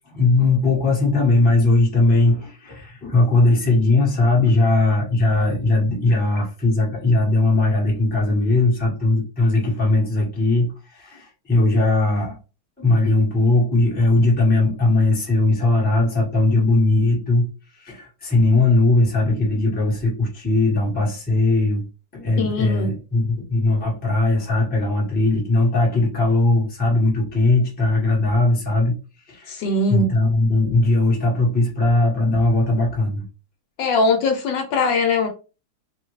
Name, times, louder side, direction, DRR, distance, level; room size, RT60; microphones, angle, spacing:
voice 1, 0.1-12.4 12.8-17.5 17.7-21.8 22.1-28.9 29.3-29.6 29.9-33.2, left 2 dB, 5° left, -3 dB, 0.7 m, -19 dB
voice 2, 22.4-22.9 29.5-30.1 33.8-35.3, left 3 dB, 70° left, 3 dB, 1.2 m, -21 dB
3.4 x 2.1 x 3.1 m, 0.33 s
omnidirectional pair, 2.2 m